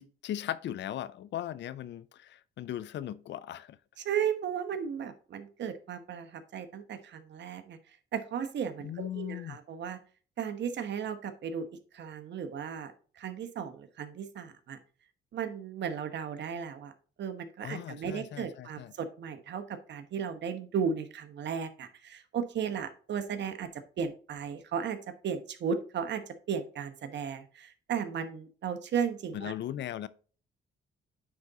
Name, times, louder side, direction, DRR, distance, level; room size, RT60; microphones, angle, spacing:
voice 1, 0.0-3.8 8.8-9.6 17.6-18.9 29.3-30.1, left 11 dB, 65° left, 0.5 m, -38 dB
voice 2, 4.0-7.8 8.1-10.0 10.4-11.7 11.9-14.8 15.3-16.9 17.2-23.7 24.0-25.0 25.2-29.5, right 7 dB, 65° right, 1.1 m, -35 dB
9.5 x 4.0 x 3.6 m
cardioid pair, 90°, 20 cm